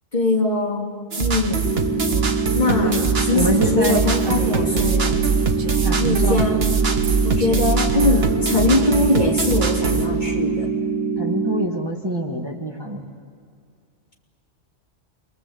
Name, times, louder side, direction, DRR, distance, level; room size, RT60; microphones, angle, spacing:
voice 1, 0.1-0.9 1.2-1.7 2.1-3.0 3.2-5.2 6.0-6.8 7.2-10.7, left 2 dB, 40° left, -1 dB, 2.8 m, -22 dB
sound 1, 1.1-10.1, right 4 dB, 55° right, 1.6 m, -23 dB
sound 2, 1.6-11.7, right 5 dB, 5° right, 2.2 m, -24 dB
voice 2, 2.7-3.0 3.3-4.4 5.8-6.4 11.2-13.0, right 1 dB, 20° right, 0 dB, 1.9 m, -25 dB
Female speech woman speaking, 2.8-6.1 7.0-9.3, right 4 dB, 80° right, 1.5 m, -36 dB
29.0 x 22.5 x 7.9 m, 2.2 s
omnidirectional pair, 1.2 m